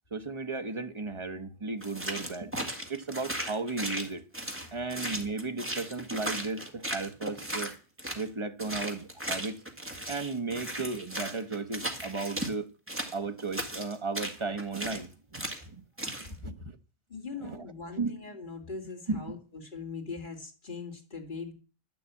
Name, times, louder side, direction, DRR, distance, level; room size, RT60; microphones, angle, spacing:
voice 1, 0.1-2.5 2.9-4.2 4.7-7.7 8.1-9.6 10.1-12.7 13.1-15.8 16.4-16.6 17.4-17.6 18.0-18.1 19.1-19.2, right 3 dB, 30° right, 0.9 m, -35 dB
sound 1, 1.8-8.3 8.6-12.5 12.9-15.1 15.3-15.6 16.0-16.3, right 1 dB, 10° right, 1.8 m, -36 dB
voice 2, 17.1-21.5, left 4 dB, 50° left, 2.6 m, -41 dB
11.0 x 7.0 x 8.3 m
omnidirectional pair, 1.1 m